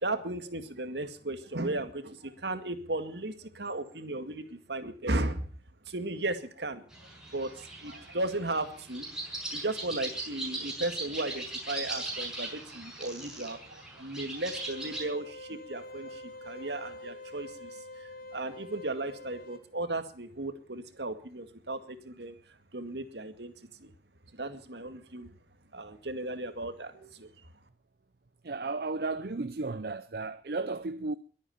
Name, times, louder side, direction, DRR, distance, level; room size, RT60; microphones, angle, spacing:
voice 1, 0.0-5.5 5.9-9.1 9.5-22.3 22.7-23.5 23.8-23.9 24.3-25.3 25.7-27.3, right 2 dB, 75° right, 2.1 m, -36 dB
sound 1, 6.9-15.0, right 2 dB, 5° right, 6.8 m, -39 dB
sound 2, 14.5-19.6, left 2 dB, 55° left, 2.7 m, -46 dB
voice 2, 28.4-31.1, right 3 dB, 60° right, 0.7 m, -34 dB
22.5 x 8.9 x 7.0 m
head